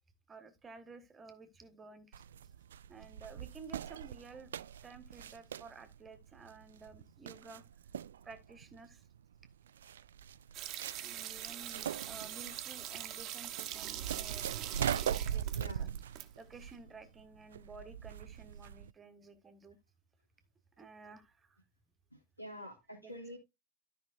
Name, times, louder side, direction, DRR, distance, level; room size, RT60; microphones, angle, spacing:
voice 1, 0.3-2.2 2.9-4.5 4.8-7.6 8.2-9.0 11.0-14.5 15.0-15.9 16.4-19.8 20.8-21.6 23.0-23.1, right 4 dB, 15° right, 1.4 m, -53 dB
sound 1, 2.1-18.9, right 9 dB, 65° right, 0.3 m, -41 dB
sound 2, 10.5-16.3 16.5-16.6, right 12 dB, 35° right, 1.0 m, -43 dB
voice 2, 15.5-16.0 22.1-23.4, equal, 90° left, 3.2 m, -47 dB
13.0 x 5.4 x 2.6 m
figure-of-eight pair, 90°, 0 cm